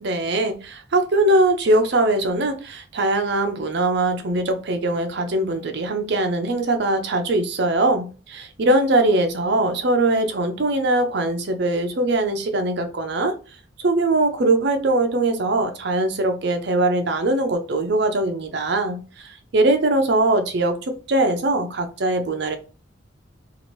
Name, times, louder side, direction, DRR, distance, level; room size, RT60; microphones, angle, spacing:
voice 1, 0.0-13.3 13.8-20.8 21.1-22.6, right 2 dB, 55° right, 0.5 m, -21 dB
2.8 x 2.5 x 3.1 m
head